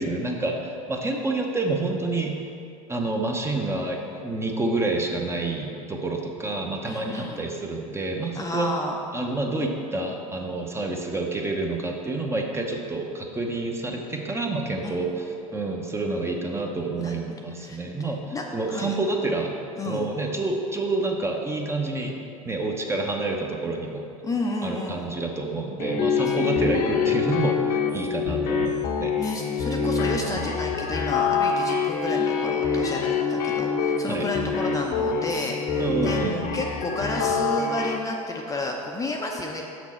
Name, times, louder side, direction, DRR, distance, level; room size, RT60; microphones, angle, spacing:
voice 1, 0.0-2.4 2.9-8.7 9.1-15.3 15.5-19.6 19.9-22.1 22.4-24.0 24.6-29.1 34.1-34.3 35.8-36.6, right 2 dB, 15° right, 1 dB, 0.8 m, -28 dB
voice 2, 6.8-7.4 8.3-9.0 14.8-15.0 17.0-17.2 17.6-17.8 18.3-18.4 18.7-19.0 19.8-20.1 24.2-25.0 29.2-36.2 36.5-39.6, left 2 dB, 20° left, 0 dB, 0.6 m, -31 dB
sound 1, 25.8-38.0, left 5 dB, 50° left, 0.9 m, -25 dB
6.1 x 6.0 x 4.3 m, 2.6 s
hypercardioid pair, 85°, 19 cm